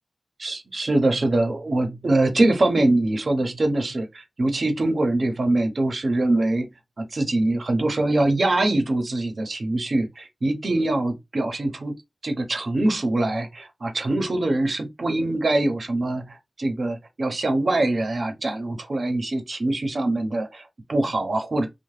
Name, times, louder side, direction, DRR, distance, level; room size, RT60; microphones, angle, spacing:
voice 1, 0.4-6.7 7.0-11.9 12.2-21.7, right 2 dB, 65° right, 0.6 m, -23 dB
2.7 x 2.1 x 3.1 m
wide cardioid pair, 55°, 0 cm